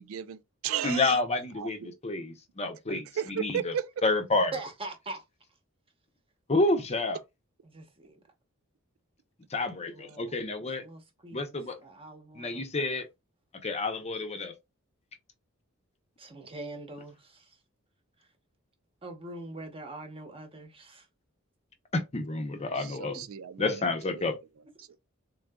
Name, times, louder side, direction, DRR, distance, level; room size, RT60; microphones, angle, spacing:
voice 1, 0.0-1.2 1.6-1.9 2.9-3.9 22.8-24.3 24.9-25.0, right 9 dB, 75° right, 0.4 m, -35 dB
voice 2, 0.8-3.7 4.0-4.5 6.5-7.2 9.5-10.8 11.3-11.8 12.3-13.1 13.6-14.5 21.9-23.2 23.6-24.4, left 2 dB, 30° left, 0.7 m, -29 dB
voice 3, 4.5-5.2 7.6-8.2 9.8-10.3 10.8-12.6 16.2-17.5 19.0-21.1, right 2 dB, 25° right, 0.9 m, -43 dB
3.8 x 3.6 x 2.2 m
head